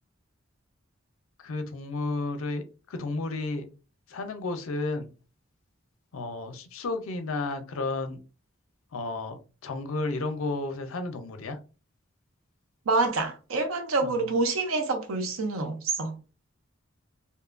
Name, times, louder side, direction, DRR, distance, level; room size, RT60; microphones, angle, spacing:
voice 1, 1.4-3.7 4.1-5.1 6.1-8.2 8.9-11.6 14.0-14.2, left 3 dB, 85° left, 0.5 m, -32 dB
voice 2, 12.9-16.1, right 3 dB, 90° right, 0.6 m, -27 dB
2.7 x 2.1 x 2.4 m
head